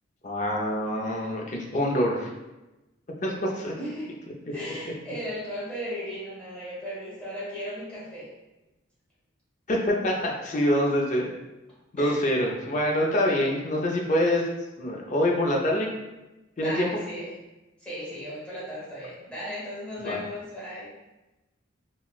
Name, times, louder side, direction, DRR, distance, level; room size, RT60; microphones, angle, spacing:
voice 1, 0.2-2.3 3.2-3.7 9.7-11.3 11.9-14.5 14.8-15.9 16.6-16.9 20.0-20.2, left 1 dB, 40° left, 0 dB, 0.5 m, -25 dB
voice 2, 3.8-4.1 4.5-8.3 12.0-12.3 16.6-17.3 17.8-20.9, equal, 5° left, -10 dB, 1.1 m, -36 dB
4.0 x 2.1 x 2.3 m, 1.0 s
head